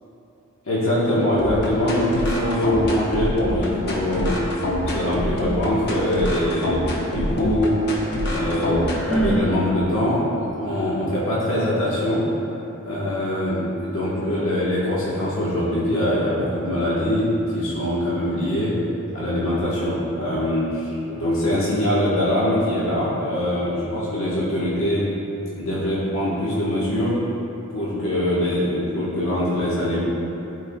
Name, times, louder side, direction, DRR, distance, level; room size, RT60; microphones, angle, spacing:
voice 1, 0.6-4.4 4.9-7.8 8.2-12.2 12.8-17.3 17.5-18.7 19.1-25.1 25.6-27.2 27.7-30.0, left 1 dB, 70° left, -9 dB, 1.4 m, -23 dB
sound 1, 1.4-9.4, left 1 dB, 50° left, 0.9 m, -25 dB
Sigh, 8.9-9.6, right 1 dB, 5° left, 0.4 m, -24 dB
12.0 x 4.7 x 2.3 m, 3.0 s
head